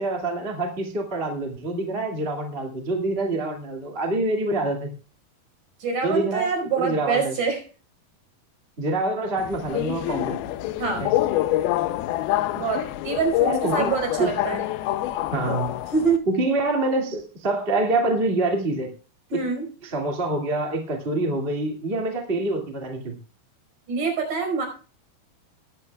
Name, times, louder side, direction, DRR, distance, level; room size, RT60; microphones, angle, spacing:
voice 1, 0.0-4.9 6.0-7.3 8.8-10.4 11.0-11.1 13.5-13.9 14.2-14.4 15.3-15.7 16.3-18.9 19.3-19.4 19.8-23.1, right 2 dB, 20° right, 1 dB, 1.7 m, -26 dB
voice 2, 5.8-7.6 10.8-11.0 12.5-14.6 15.9-16.2 19.3-19.7 23.9-24.7, right 5 dB, 55° right, 3 dB, 6.6 m, -25 dB
Subway metro underground, 9.4-16.2, left 14 dB, 80° left, 2.5 m, -26 dB
19.5 x 11.5 x 2.4 m, 0.36 s
omnidirectional pair, 4.6 m